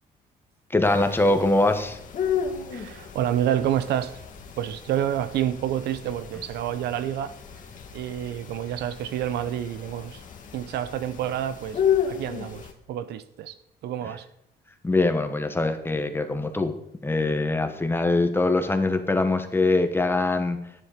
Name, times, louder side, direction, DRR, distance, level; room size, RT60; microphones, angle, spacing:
voice 1, 0.7-2.0 14.8-16.7 17.0-20.7, left 2 dB, 15° left, 7 dB, 1.3 m, -23 dB
sound 1, 0.8-12.7, left 8 dB, 50° left, 1.8 m, -33 dB
voice 2, 2.7-4.2 4.6-7.3 7.9-10.2 10.5-13.6 13.8-14.3, right 11 dB, 75° right, 13 dB, 0.7 m, -28 dB
10.5 x 10.0 x 5.1 m, 0.78 s
cardioid pair, 100°, 17 cm